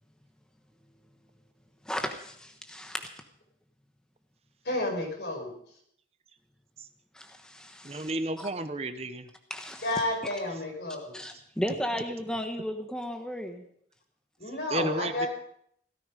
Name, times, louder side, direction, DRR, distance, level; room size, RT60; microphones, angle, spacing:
voice 1, 1.8-3.1 7.1-8.1 8.4-8.5 9.5-10.0 11.1-13.6, equal, 5° left, 4 dB, 1.1 m, -35 dB
voice 2, 4.7-5.5 9.8-11.2 14.4-15.3, left 2 dB, 75° left, 1 dB, 5.4 m, -31 dB
voice 3, 7.8-9.3 14.7-15.3, right 2 dB, 35° right, 10 dB, 0.9 m, -32 dB
16.5 x 14.0 x 5.3 m, 0.68 s
head